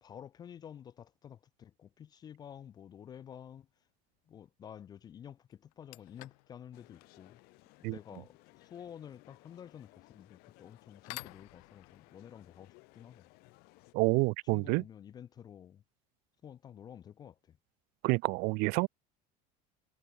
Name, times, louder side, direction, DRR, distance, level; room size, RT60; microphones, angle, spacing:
voice 1, 0.0-3.7 4.3-7.4 7.9-13.2 14.5-15.8 16.4-17.6, left 9 dB, 20° left, 0.4 m, -50 dB
sound 1, 2.8-2.9 4.9-5.0 5.5-14.2, left 29 dB, 90° left, 1.8 m, -54 dB
sound 2, 6.7-13.9, left 25 dB, 60° left, 6.3 m, -61 dB
voice 2, 13.9-14.8 18.0-18.9, right 28 dB, 55° right, 0.4 m, -28 dB
cardioid pair, 165°, 18 cm